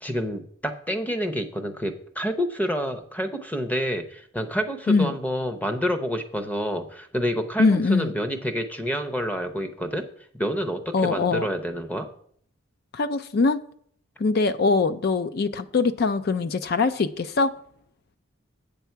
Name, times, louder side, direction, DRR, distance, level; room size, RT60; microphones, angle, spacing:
voice 1, 0.0-10.0 10.3-12.1, equal, 10° left, 8 dB, 0.7 m, -28 dB
voice 2, 7.6-8.1 10.9-11.5 12.9-13.6 14.2-17.5, left 4 dB, 50° left, 13 dB, 0.4 m, -22 dB
8.3 x 6.9 x 4.5 m, 0.62 s
head